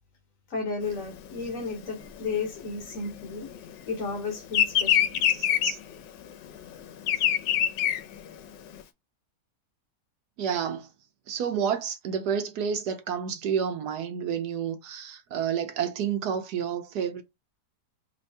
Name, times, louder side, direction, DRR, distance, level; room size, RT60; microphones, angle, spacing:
voice 1, 0.5-3.5 3.9-5.2, left 4 dB, 55° left, 1.2 m, -33 dB
Bird vocalization bird call bird song, 0.9-3.8 4.1-8.8, left 10 dB, 90° left, 1.3 m, -25 dB
voice 2, 5.3-5.8 10.4-10.9 11.3-17.2, right 7 dB, 70° right, 1.2 m, -30 dB
3.4 x 2.6 x 3.2 m
omnidirectional pair, 1.8 m